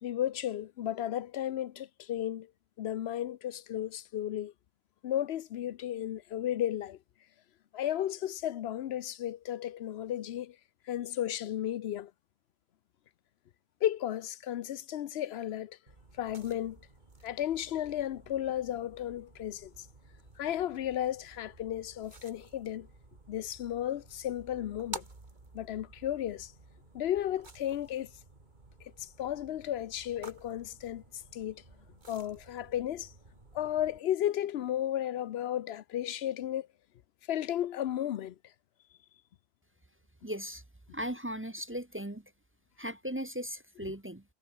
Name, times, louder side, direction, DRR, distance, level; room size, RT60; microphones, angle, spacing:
voice 1, 0.0-2.5 2.8-4.5 5.0-7.0 7.7-10.6 10.9-12.1 13.8-15.8 16.2-16.8 17.2-19.9 20.4-22.9 23.3-25.0 25.5-26.5 26.9-28.1 28.8-31.0 31.3-31.6 32.1-33.1 33.5-36.7 37.3-38.3, left 11 dB, 85° left, 0.9 m, -34 dB
sound 1, 15.9-34.0, right 3 dB, 50° right, 2.6 m, -52 dB
voice 2, 40.2-40.6 40.9-42.3 42.8-44.2, equal, 15° right, 0.8 m, -37 dB
omnidirectional pair, 1.0 m